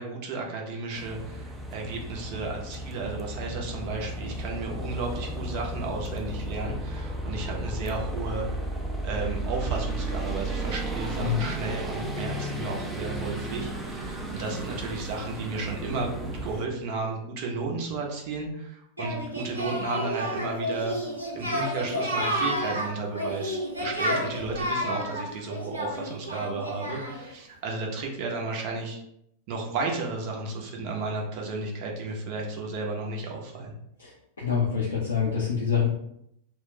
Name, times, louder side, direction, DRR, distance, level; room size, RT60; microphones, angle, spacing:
voice 1, 0.0-8.5 9.0-21.0 21.3-29.0 29.5-33.7, right 3 dB, 45° right, 0 dB, 0.7 m, -33 dB
sound 1, 0.9-16.7, right 1 dB, 5° right, 0.4 m, -34 dB
Singing, 19.0-27.3, equal, 85° right, 0.7 m, -31 dB
voice 2, 34.0-35.9, left 7 dB, 70° left, -4 dB, 0.5 m, -26 dB
2.4 x 2.0 x 3.7 m, 0.75 s
figure-of-eight pair, 90°, 0 cm